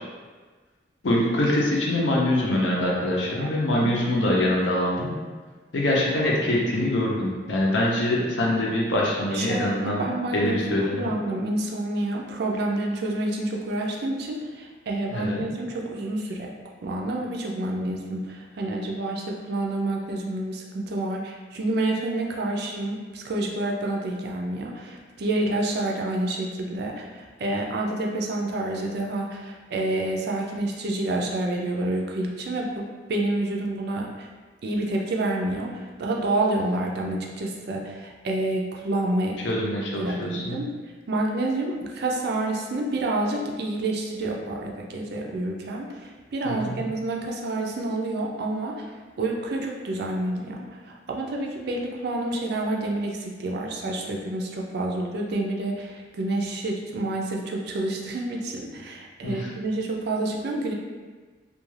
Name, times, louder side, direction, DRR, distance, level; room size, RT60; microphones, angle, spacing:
voice 1, 1.0-5.1 5.7-10.0 10.3-11.1 15.1-15.4 39.4-40.6 46.4-46.8 59.2-59.5, left 1 dB, 75° left, -3 dB, 0.6 m, -24 dB
voice 2, 3.4-4.1 9.3-16.5 16.8-34.3 34.6-39.4 40.0-40.7 41.1-48.9 49.2-60.7, right 2 dB, 60° right, -1 dB, 0.4 m, -28 dB
2.4 x 2.3 x 3.1 m, 1.4 s
head